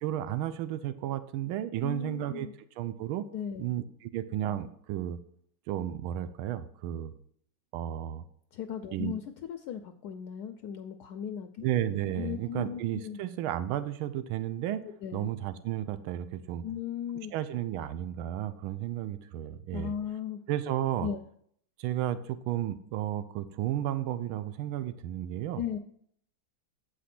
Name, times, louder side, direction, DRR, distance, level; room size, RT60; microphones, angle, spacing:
voice 1, 0.0-2.5 2.8-3.3 3.6-5.2 5.7-7.1 7.7-8.2 8.9-9.1 11.6-14.8 15.1-16.6 17.3-19.9 20.5-21.1 21.8-25.6, right 12 dB, 85° right, 12 dB, 1.5 m, -33 dB
voice 2, 1.8-2.5 3.3-3.7 8.5-11.6 12.2-13.2 14.8-15.3 16.6-17.3 19.7-20.4 21.0-21.2 25.5-25.8, left 8 dB, 75° left, 7 dB, 0.9 m, -37 dB
8.3 x 5.2 x 5.8 m, 0.65 s
omnidirectional pair, 2.2 m